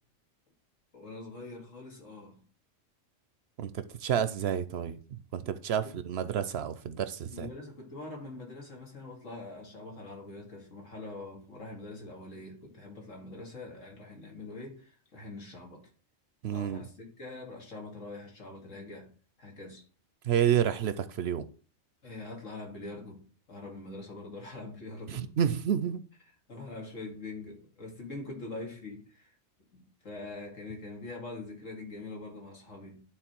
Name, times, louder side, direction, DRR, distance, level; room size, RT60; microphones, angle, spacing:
voice 1, 0.9-2.4 5.8-6.0 7.3-15.8 16.5-19.1 19.4-19.8 22.0-23.2 23.5-25.3 26.5-29.4 29.7-33.0, left 2 dB, 80° left, 2.6 m, -44 dB
voice 2, 3.6-7.5 16.4-16.8 20.2-21.5 25.1-26.0, right 9 dB, 65° right, 0.8 m, -30 dB
11.0 x 3.8 x 4.5 m
omnidirectional pair, 1.3 m